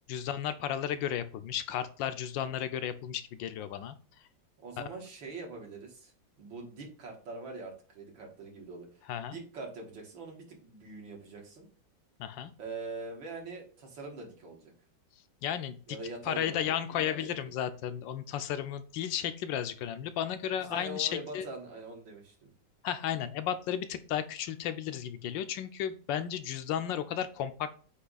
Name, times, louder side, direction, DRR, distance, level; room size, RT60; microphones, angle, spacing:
voice 1, 0.1-4.0 9.1-9.4 12.2-12.5 15.4-16.0 16.3-21.5 22.8-27.7, left 10 dB, 80° left, 11 dB, 1.3 m, -34 dB
voice 2, 4.6-6.1 6.4-8.9 9.3-11.7 12.6-14.7 15.9-17.4 20.6-22.5, right 2 dB, 80° right, 0 dB, 2.5 m, -43 dB
8.2 x 3.1 x 3.9 m, 0.40 s
omnidirectional pair, 2.0 m